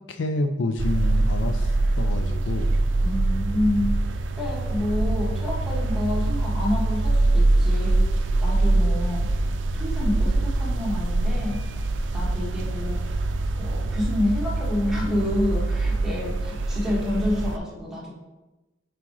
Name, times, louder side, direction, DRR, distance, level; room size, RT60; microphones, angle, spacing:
voice 1, 0.1-2.8 5.1-5.2, left 2 dB, 75° left, 7 dB, 0.5 m, -28 dB
sound 1, 0.8-17.6, right 2 dB, 85° right, 0.5 m, -24 dB
voice 2, 3.0-4.0 4.4-9.3 9.7-11.6 12.1-13.1 13.6-18.1, left 1 dB, 5° right, -6 dB, 1.7 m, -28 dB
7.5 x 4.8 x 3.1 m, 1.1 s
head